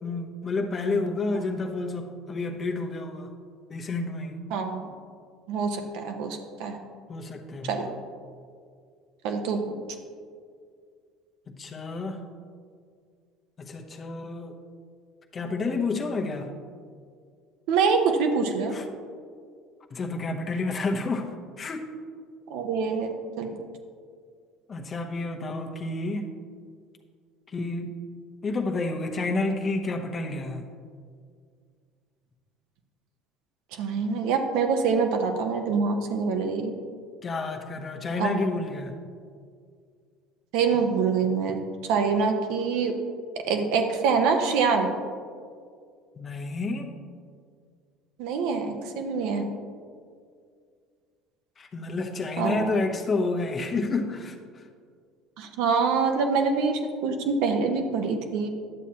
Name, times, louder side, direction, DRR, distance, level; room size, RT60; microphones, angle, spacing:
voice 1, 0.0-3.3 3.7-4.4 7.1-7.8 11.5-12.3 13.6-14.6 15.3-16.5 18.7-18.9 19.9-21.3 21.6-21.9 24.7-26.3 27.5-27.9 28.4-30.7 37.2-38.9 46.2-46.9 51.6-54.6, left 3 dB, 35° left, 3 dB, 0.9 m, -30 dB
voice 2, 4.5-4.8 5.5-6.8 7.6-7.9 9.2-9.6 17.7-18.7 22.5-23.5 33.7-36.7 38.2-38.3 40.5-41.5 41.9-42.9 43.5-44.9 48.2-49.4 52.4-52.8 55.4-58.5, right 5 dB, 75° right, 4 dB, 0.8 m, -25 dB
10.5 x 7.2 x 2.9 m, 2.1 s
hypercardioid pair, 80°, 0 cm